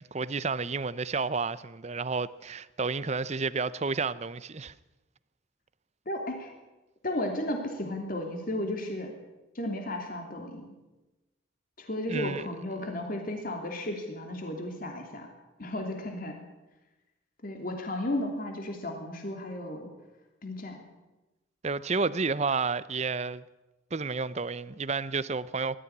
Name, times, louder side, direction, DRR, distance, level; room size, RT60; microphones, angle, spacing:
voice 1, 0.0-4.7 12.1-12.5 21.6-23.4 23.9-25.8, right 4 dB, 35° right, 0.6 m, -31 dB
voice 2, 6.1-6.5 7.0-9.1 9.5-10.6 11.8-15.3 15.6-16.4 17.4-19.9 20.4-20.8, left 1 dB, 45° left, 2.9 m, -34 dB
20.5 x 14.0 x 9.7 m
head